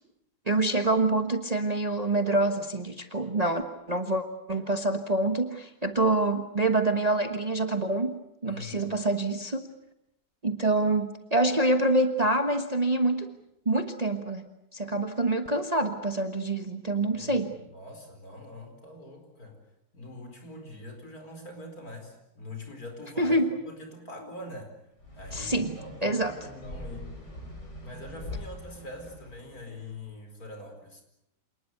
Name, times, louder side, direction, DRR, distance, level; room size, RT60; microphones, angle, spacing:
voice 1, 0.5-9.7 10.4-13.4 13.6-17.5 23.2-23.5 25.3-26.3, right 2 dB, 25° right, 7 dB, 1.2 m, -26 dB
voice 2, 8.4-8.9 17.1-19.6 19.9-24.8 25.1-27.1 27.8-31.0, left 1 dB, 60° left, 5 dB, 5.2 m, -43 dB
sound 1, 25.0-29.9, left 1 dB, 75° left, 6.3 m, -43 dB
27.0 x 20.0 x 8.0 m, 0.79 s
omnidirectional pair, 1.8 m